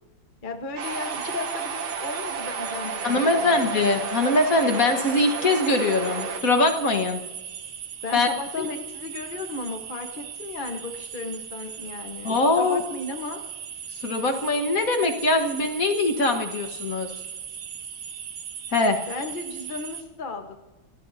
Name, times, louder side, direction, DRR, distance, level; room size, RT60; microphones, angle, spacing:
voice 1, 0.4-3.7 8.0-13.4 19.1-20.6, left 3 dB, 30° left, 4 dB, 1.1 m, -35 dB
sound 1, 0.8-6.4, right 5 dB, 60° right, 1.6 m, -32 dB
sound 2, 0.8-20.0, right 8 dB, 80° right, 2.0 m, -38 dB
voice 2, 3.0-7.2 8.1-8.3 8.6-8.7 12.2-12.8 14.0-17.1 18.7-19.0, left 2 dB, 45° left, 5 dB, 1.7 m, -22 dB
28.0 x 16.5 x 2.8 m, 1.1 s
omnidirectional pair, 2.3 m